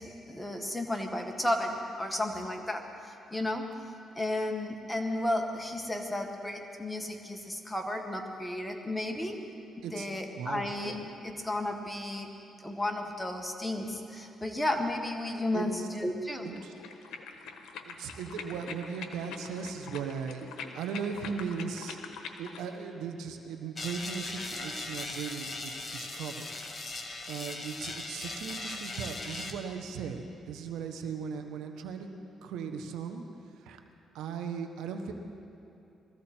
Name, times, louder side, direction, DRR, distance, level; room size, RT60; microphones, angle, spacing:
voice 1, 0.0-3.6 4.1-9.4 9.9-12.3 12.6-16.5, left 1 dB, 10° left, 3 dB, 1.8 m, -33 dB
voice 2, 10.3-10.7 15.5-15.9 16.4-16.7 17.8-22.0 22.4-27.0 27.3-32.1 32.4-33.3 33.6-33.8 34.1-35.1, right 6 dB, 85° right, 5 dB, 1.2 m, -38 dB
sound 1, 16.5-22.7, left 5 dB, 80° left, 1.2 m, -44 dB
sound 2, 23.8-29.5, left 2 dB, 30° left, 1.6 m, -39 dB
22.0 x 14.5 x 4.5 m, 2.9 s
cardioid pair, 90°, 0 cm